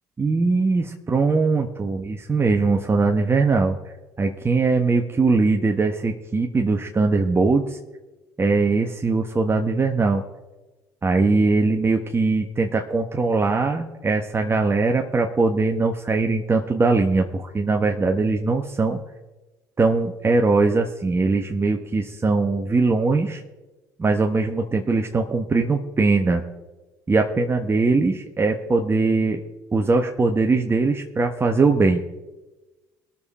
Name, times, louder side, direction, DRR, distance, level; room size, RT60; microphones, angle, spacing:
voice 1, 0.2-3.8 4.2-7.8 8.4-10.2 11.0-19.0 19.8-23.4 24.0-26.4 27.1-29.4 29.7-32.0, right 3 dB, 25° right, 2 dB, 1.2 m, -21 dB
20.5 x 7.2 x 4.3 m, 1.1 s
hypercardioid pair, 65°, 9 cm